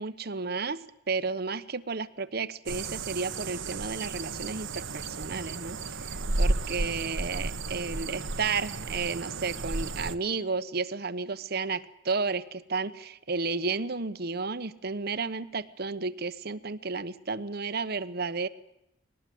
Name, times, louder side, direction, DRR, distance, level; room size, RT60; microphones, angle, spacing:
voice 1, 0.0-18.5, right 4 dB, 55° right, 14 dB, 1.0 m, -32 dB
sound 1, 2.7-10.1, right 2 dB, 85° right, 1.3 m, -33 dB
21.5 x 18.5 x 9.4 m, 0.86 s
head